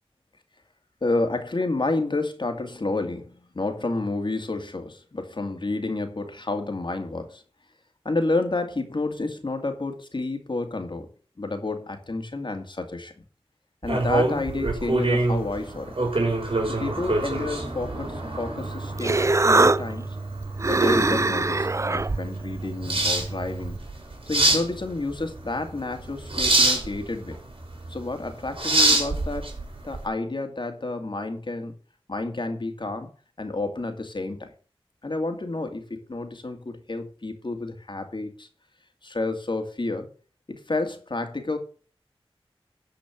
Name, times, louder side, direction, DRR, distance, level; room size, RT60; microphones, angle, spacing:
voice 1, 1.0-7.4 8.0-11.1 11.4-13.2 13.8-16.0 16.7-20.1 20.7-23.8 24.3-27.4 27.9-29.5 29.8-31.7 32.1-33.1 33.4-34.5 35.0-38.5 39.0-40.1 40.5-41.6, left 2 dB, 55° left, 6 dB, 2.3 m, -30 dB
sound 1, 13.8-30.0, right 2 dB, 65° right, 3.9 m, -26 dB
Human voice, 18.6-23.8, right 3 dB, 30° right, 0.4 m, -24 dB
11.5 x 5.1 x 7.4 m, 0.40 s
wide cardioid pair, 45°, 10 cm